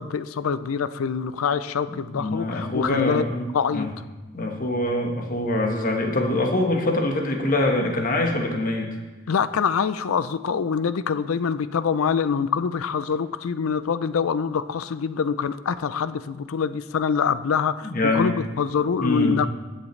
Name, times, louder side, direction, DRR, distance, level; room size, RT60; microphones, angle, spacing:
voice 1, 0.0-3.2 3.5-3.9 9.3-19.5, left 6 dB, 90° left, 14 dB, 0.4 m, -25 dB
voice 2, 1.9-3.9 4.3-8.9 17.8-18.3 19.0-19.4, left 1 dB, 40° left, 2 dB, 1.3 m, -24 dB
15.0 x 7.4 x 3.2 m, 1.2 s
head